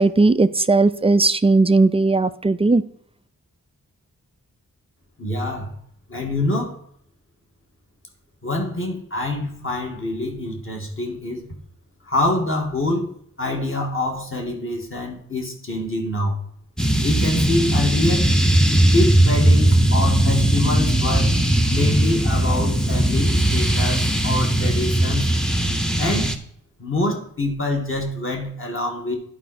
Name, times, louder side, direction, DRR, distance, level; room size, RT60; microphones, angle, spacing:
voice 1, 0.0-2.8, right 3 dB, 15° right, 13 dB, 0.4 m, -17 dB
voice 2, 5.2-5.7 6.1-6.7 8.4-11.4 12.1-13.1 13.4-16.3 17.0-18.3 18.8-21.4 21.7-25.3 26.0-26.3 26.8-29.2, left 2 dB, 35° left, 1 dB, 2.0 m, -25 dB
Fire Sound Design, 16.8-26.4, right 1 dB, ahead, 0.8 m, -18 dB
11.0 x 4.7 x 4.2 m, 0.64 s
wide cardioid pair, 100°, 35 cm